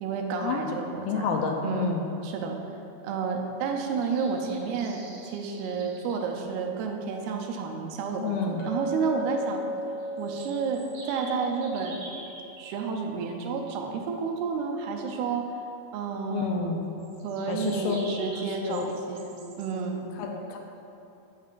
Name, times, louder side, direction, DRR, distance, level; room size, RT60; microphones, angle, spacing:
voice 1, 0.0-1.3 1.6-2.6 3.0-9.6 10.2-12.0 12.6-15.5 15.9-16.7 17.2-20.1, right 5 dB, 90° right, 2 dB, 2.6 m, -31 dB
voice 2, 1.1-2.1 8.2-8.6 16.3-16.9 17.5-18.0 18.6-18.8 20.2-20.6, left 5 dB, 80° left, 2 dB, 2.3 m, -29 dB
sound 1, 4.0-6.1 10.0-12.4 17.0-19.7, right 2 dB, 65° right, 3.1 m, -46 dB
Chink clink, 8.6-12.8, left 1 dB, 65° left, 1.5 m, -36 dB
8.3 x 8.3 x 2.4 m, 2.9 s
omnidirectional pair, 4.4 m